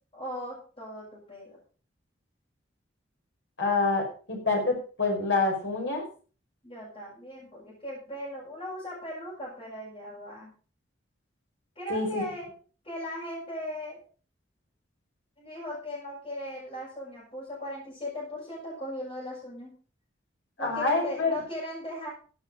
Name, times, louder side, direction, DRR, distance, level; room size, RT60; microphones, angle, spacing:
voice 1, 0.1-1.6 6.6-10.5 11.7-12.5 12.8-14.0 15.4-19.7 20.6-22.1, left 1 dB, 30° left, -8 dB, 6.9 m, -38 dB
voice 2, 3.6-6.0 11.9-12.2 20.6-21.3, left 3 dB, 70° left, 1 dB, 5.3 m, -27 dB
15.5 x 8.9 x 5.0 m, 0.39 s
head